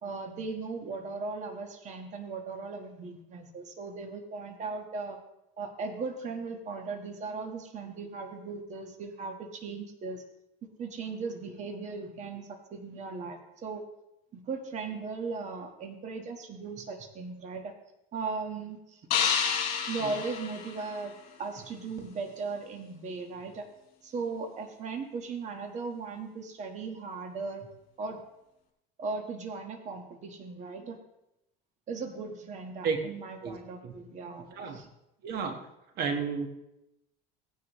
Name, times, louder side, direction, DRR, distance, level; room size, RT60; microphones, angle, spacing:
voice 1, 0.0-5.2 5.6-10.2 10.8-13.8 14.3-17.7 18.1-19.1 19.9-23.7 24.0-27.7 28.0-28.2 29.0-31.0 31.9-34.9, right 4 dB, 40° right, 4 dB, 1.4 m, -38 dB
sound 1, 19.1-21.4, left 7 dB, 50° left, 4.2 m, -30 dB
voice 2, 34.5-34.8 35.2-35.6 36.0-36.5, right 5 dB, 55° right, 5 dB, 1.5 m, -32 dB
17.0 x 9.9 x 3.1 m, 0.87 s
cardioid pair, 135°, 19 cm